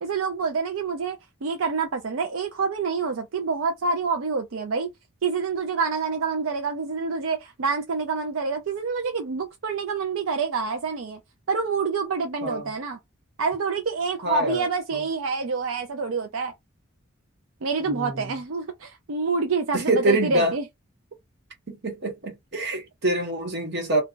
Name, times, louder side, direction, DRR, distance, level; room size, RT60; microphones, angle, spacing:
voice 1, 0.0-4.9 5.2-11.2 11.5-13.0 13.4-16.5 17.6-20.6, right 4 dB, 80° right, 0.5 m, -27 dB
voice 2, 14.2-14.6 17.8-18.4 19.7-20.5 21.7-24.0, right 1 dB, 55° right, 1.1 m, -25 dB
2.3 x 2.3 x 3.8 m
head